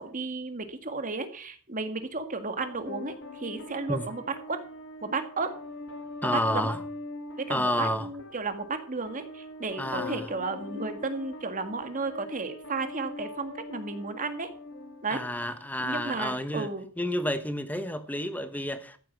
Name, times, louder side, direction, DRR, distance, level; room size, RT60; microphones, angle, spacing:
voice 1, 0.0-4.6 5.0-5.5 6.2-6.7 7.4-14.5 15.0-15.2 15.8-16.8, right 3 dB, 35° right, 1.8 m, -33 dB
sound 1, 2.6-15.7, left 2 dB, 55° left, 2.0 m, -42 dB
voice 2, 6.2-6.8 7.5-8.1 9.8-10.3 15.1-16.7 17.0-19.0, left 1 dB, 10° left, 1.1 m, -30 dB
14.0 x 8.6 x 6.0 m
head